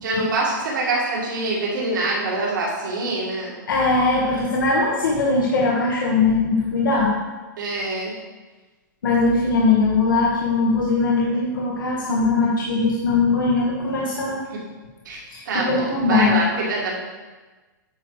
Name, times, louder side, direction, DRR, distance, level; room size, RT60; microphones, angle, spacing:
voice 1, 0.0-3.5 7.6-8.1 15.1-16.9, right 2 dB, 70° right, -4 dB, 2.1 m, -25 dB
voice 2, 3.7-7.1 9.0-14.4 15.3-16.3, left 3 dB, 85° left, -3 dB, 1.4 m, -20 dB
8.8 x 4.6 x 4.9 m, 1.3 s
hypercardioid pair, 160°, 11 cm